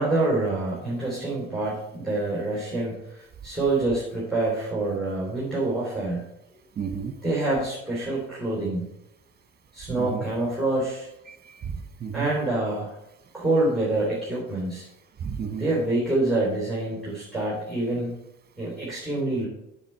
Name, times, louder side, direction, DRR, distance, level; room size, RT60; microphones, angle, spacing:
voice 1, 0.0-6.2 7.2-8.9 9.7-11.1 12.1-13.0 13.3-14.9 15.6-18.2 18.6-19.5, right 2 dB, ahead, -7 dB, 3.6 m, -26 dB
voice 2, 6.8-7.1 10.0-10.2 11.3-12.3 15.2-15.7, right 7 dB, 35° right, 7 dB, 1.5 m, -32 dB
7.3 x 7.2 x 4.6 m, 0.87 s
supercardioid pair, 80°, 29 cm